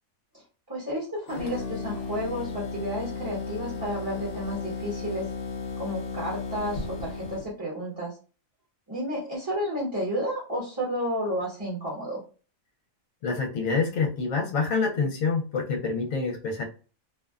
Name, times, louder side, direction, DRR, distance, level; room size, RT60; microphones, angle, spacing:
voice 1, 0.3-5.3 5.8-8.1 8.9-12.2, equal, 20° right, -5 dB, 0.8 m, -31 dB
sound 1, 1.3-7.5, left 4 dB, 55° left, 0.8 m, -35 dB
voice 2, 13.2-16.6, left 4 dB, 75° left, 1 dB, 1.0 m, -27 dB
2.6 x 2.1 x 2.3 m, 0.36 s
omnidirectional pair, 1.5 m